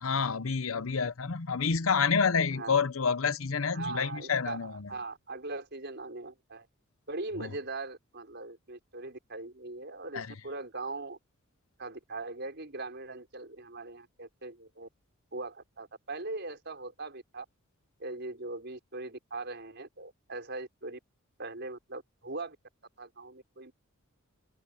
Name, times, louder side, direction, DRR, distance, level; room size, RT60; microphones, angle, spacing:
voice 1, 0.0-4.9 7.4-7.5 10.1-10.3, left 5 dB, 75° left, 0.9 m, -28 dB
voice 2, 2.5-2.8 3.7-6.7 7.1-11.2 11.8-14.9 15.3-17.5 18.0-21.0 21.4-22.6 23.0-23.7, right 3 dB, 55° right, 5.8 m, -40 dB
head